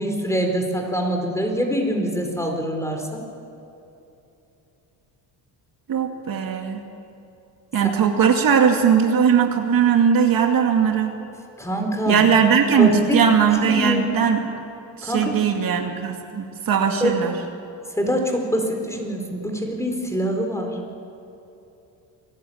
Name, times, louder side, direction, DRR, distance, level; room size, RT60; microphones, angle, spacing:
voice 1, 0.0-3.2 11.6-12.2 12.8-13.2 13.6-14.1 15.0-15.3 17.0-17.3 18.0-20.7, equal, 5° left, 3 dB, 4.3 m, -24 dB
voice 2, 5.9-6.8 7.7-11.1 12.1-14.5 15.0-17.3, right 7 dB, 55° right, 3 dB, 2.4 m, -19 dB
27.0 x 18.5 x 8.8 m, 2.8 s
cardioid pair, 125°, 42 cm